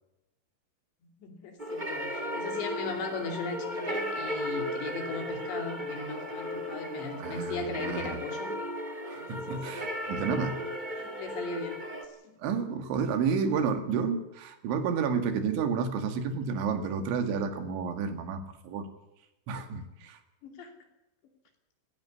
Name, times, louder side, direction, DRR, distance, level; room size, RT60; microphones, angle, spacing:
voice 1, 1.0-8.5 9.2-9.7 10.0-10.5 11.0-11.8 12.1-12.3 20.4-20.7, left 4 dB, 70° left, 4 dB, 4.9 m, -38 dB
sound 1, 1.6-12.0, equal, 60° right, 0.5 m, -35 dB
voice 2, 7.2-8.2 8.9-10.6 12.4-18.9 19.5-20.2, right 6 dB, 75° right, 7 dB, 4.3 m, -31 dB
17.0 x 16.0 x 9.6 m, 0.92 s
omnidirectional pair, 5.4 m